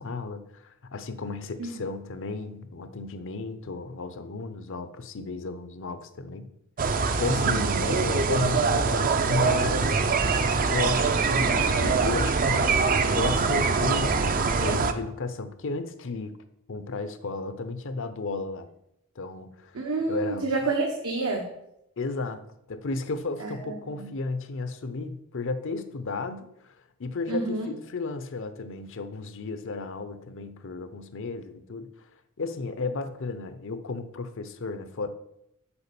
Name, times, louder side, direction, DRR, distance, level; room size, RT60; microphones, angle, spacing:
voice 1, 0.0-6.5 7.2-10.0 10.3-16.4 16.7-18.7 19.2-19.7 20.1-20.5 22.0-26.7 27.0-31.9 32.4-35.1, left 3 dB, 60° left, 11 dB, 0.7 m, -33 dB
sound 1, 6.8-14.9, right 4 dB, 40° right, 0.5 m, -23 dB
voice 2, 7.4-7.8 19.7-21.5 23.4-24.1 27.3-27.7, right 3 dB, 75° right, 0 dB, 1.1 m, -29 dB
7.0 x 4.7 x 6.9 m, 0.80 s
head